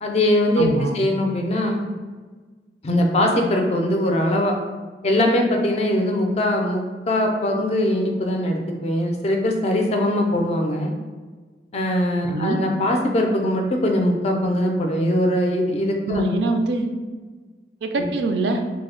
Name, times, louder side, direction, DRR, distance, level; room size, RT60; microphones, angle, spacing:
voice 1, 0.0-1.8 2.8-4.6 5.0-10.9 11.7-16.2 18.0-18.1, left 1 dB, 35° left, 2 dB, 0.4 m, -21 dB
voice 2, 0.6-0.9 12.3-12.6 16.1-16.9 17.8-18.6, right 2 dB, 70° right, 5 dB, 0.3 m, -23 dB
3.1 x 2.1 x 3.6 m, 1.4 s
head